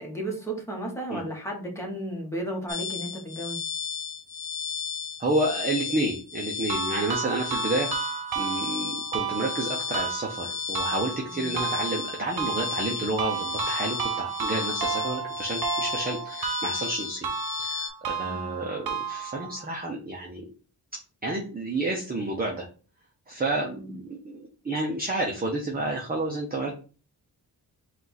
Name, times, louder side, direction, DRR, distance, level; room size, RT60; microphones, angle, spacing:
voice 1, 0.0-3.6 11.3-11.5 18.2-18.5 23.7-23.9, right 1 dB, 5° left, 0 dB, 1.2 m, -34 dB
sound 1, 2.7-17.9, left 6 dB, 45° left, 0.9 m, -34 dB
voice 2, 5.2-17.3 17.5-20.5 21.2-22.6 23.3-26.7, right 2 dB, 25° right, -1 dB, 0.7 m, -30 dB
sound 2, 6.7-19.7, right 6 dB, 80° right, 0.9 m, -33 dB
4.2 x 2.5 x 4.1 m, 0.37 s
wide cardioid pair, 145°, 36 cm